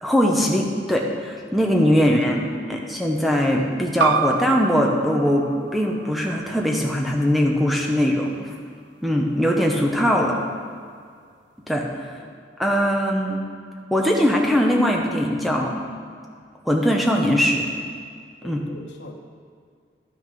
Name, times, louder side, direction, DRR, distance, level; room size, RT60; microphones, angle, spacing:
voice 1, 0.0-8.3 9.0-10.3 11.7-12.2 12.6-13.4 13.9-15.8 16.7-17.7 18.4-18.6, equal, ahead, 0 dB, 0.8 m, -21 dB
voice 2, 2.3-2.8 12.1-12.4 18.4-19.1, left 2 dB, 85° left, 3 dB, 1.0 m, -44 dB
sound 1, 4.0-9.2, right 7 dB, 85° right, 0.3 m, -30 dB
12.0 x 6.0 x 5.3 m, 2.1 s
head